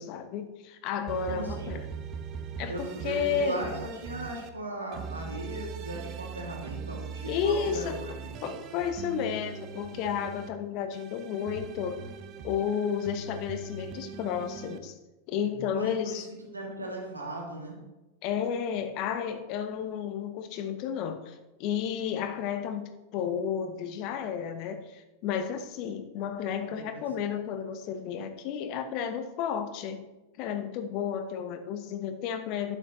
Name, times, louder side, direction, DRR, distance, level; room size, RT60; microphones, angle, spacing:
voice 1, 0.0-1.8 2.6-3.6 7.3-8.0 8.4-12.0 12.4-14.9 15.3-16.3 18.2-30.0 30.4-32.8, left 8 dB, 40° left, 8 dB, 1.0 m, -32 dB
sound 1, 1.1-4.5 4.9-10.5 10.9-14.8, right 6 dB, 35° right, 0.8 m, -40 dB
voice 2, 1.3-1.7 2.7-7.9 8.2-8.3 15.4-16.3 16.5-17.8 26.6-27.0, right 1 dB, 80° right, -1 dB, 2.5 m, -38 dB
11.5 x 8.9 x 3.2 m, 1.1 s
figure-of-eight pair, 90°, 0 cm